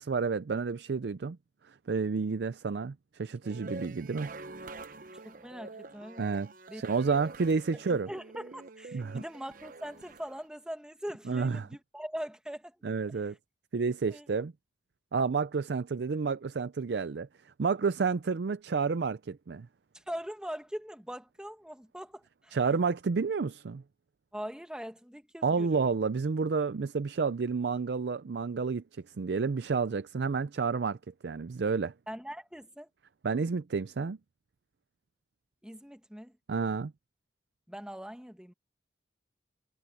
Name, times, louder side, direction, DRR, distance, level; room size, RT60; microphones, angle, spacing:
voice 1, 0.0-1.4 1.9-4.3 6.2-8.1 8.9-9.2 11.3-11.7 12.8-13.4 13.7-14.5 15.1-17.3 17.6-19.7 22.5-23.8 25.4-28.8 29.2-31.0 31.2-31.9 33.2-34.2 36.5-36.9, right 5 dB, 65° right, 0.5 m, -30 dB
sound 1, 3.4-10.4, right 3 dB, 50° right, 0.8 m, -46 dB
voice 2, 5.2-6.3 6.7-6.8 7.9-12.8 14.1-14.3 19.9-22.6 24.3-25.9 32.1-32.9 35.6-36.3 37.7-38.5, equal, 5° right, 1.5 m, -42 dB
head